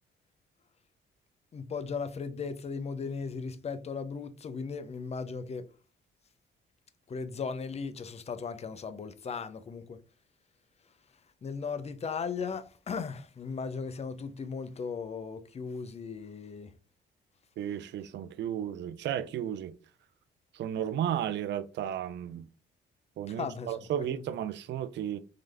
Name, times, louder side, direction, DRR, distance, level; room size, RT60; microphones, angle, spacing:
voice 1, 1.5-5.7 7.1-10.0 11.4-16.7 23.3-24.3, left 5 dB, 30° left, 0.5 m, -37 dB
voice 2, 17.6-19.7 20.5-22.5 23.2-25.2, right 10 dB, 65° right, 0.4 m, -33 dB
3.8 x 3.2 x 3.3 m
cardioid pair, 90°, 20 cm